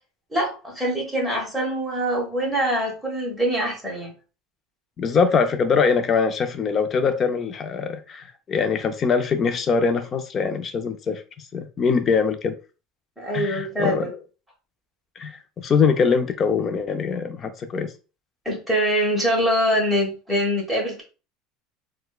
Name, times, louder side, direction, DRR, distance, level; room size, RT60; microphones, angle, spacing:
voice 1, 0.3-4.1 13.2-14.1 18.4-21.0, equal, 5° right, 1.4 m, -24 dB
voice 2, 5.0-11.2 11.5-12.5 13.3-14.1 15.2-17.9, left 5 dB, 35° left, 0.5 m, -23 dB
4.1 x 2.2 x 2.3 m
supercardioid pair, 130°, 0 cm